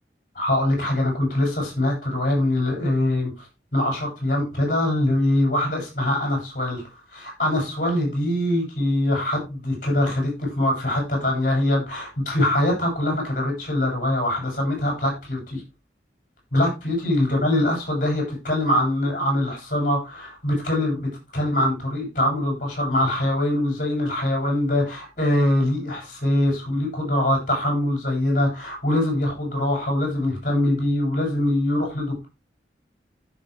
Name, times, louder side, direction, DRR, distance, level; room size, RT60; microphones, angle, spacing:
voice 1, 0.3-3.5 3.7-6.8 7.1-15.6 16.5-32.3, left 1 dB, 50° left, -1 dB, 7.7 m, -23 dB
15.0 x 6.6 x 3.5 m, 0.27 s
head